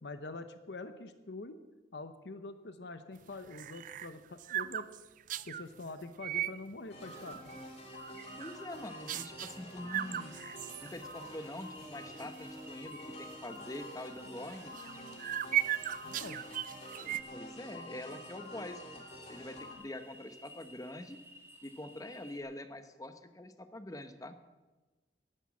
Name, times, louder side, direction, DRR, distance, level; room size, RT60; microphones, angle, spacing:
voice 1, 0.0-1.6 1.9-4.9 5.4-7.4 16.0-16.4, left 3 dB, 70° left, 10 dB, 0.9 m, -45 dB
sound 1, 3.2-5.7 6.1-6.6 7.0-7.6 8.0-8.7 9.1-9.6 9.9-11.3 11.7-11.8 12.2-12.4 12.9-13.1 14.5-17.2, right 12 dB, 45° right, 0.3 m, -37 dB
sound 2, 6.9-19.7, left 1 dB, 40° left, 2.6 m, -48 dB
sound 3, 7.9-22.4, left 1 dB, 15° right, 1.8 m, -55 dB
voice 2, 8.4-10.4 10.8-14.7 17.3-21.2 21.6-24.4, left 1 dB, 20° left, 9 dB, 0.9 m, -45 dB
11.5 x 11.0 x 7.2 m, 1.2 s
head